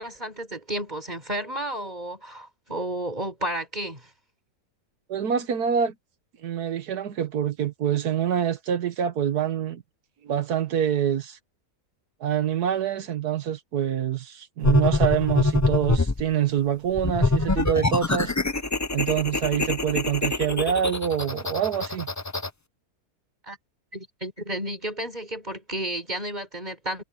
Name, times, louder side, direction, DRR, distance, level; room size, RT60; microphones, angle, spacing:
voice 1, 0.0-4.1 23.4-23.6 23.9-27.0, right 1 dB, 25° right, 5.5 m, -32 dB
voice 2, 5.1-5.9 6.4-9.8 10.2-11.4 12.2-18.3 18.9-22.1, right 9 dB, 85° right, 1.7 m, -26 dB
sound 1, 14.6-16.2 16.9-22.5, left 3 dB, 25° left, 0.4 m, -25 dB
omnidirectional pair, 1.6 m